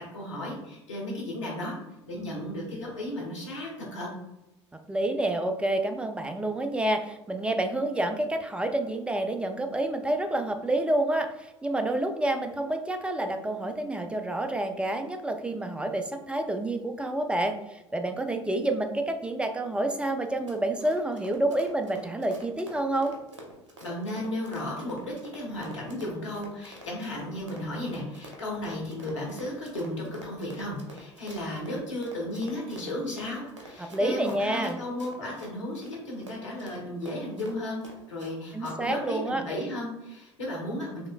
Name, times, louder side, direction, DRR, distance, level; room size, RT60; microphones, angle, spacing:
voice 1, 0.1-1.7 2.1-4.1 23.8-37.8 38.1-41.1, left 1 dB, 80° left, -3 dB, 1.3 m, -34 dB
voice 2, 4.9-23.1 33.8-34.8 38.5-39.4, right 1 dB, 5° right, 6 dB, 0.4 m, -28 dB
Run, 20.2-38.3 38.6-38.8, right 1 dB, 80° right, 0.8 m, -47 dB
5.0 x 3.1 x 2.3 m, 0.94 s
figure-of-eight pair, 70°, 15 cm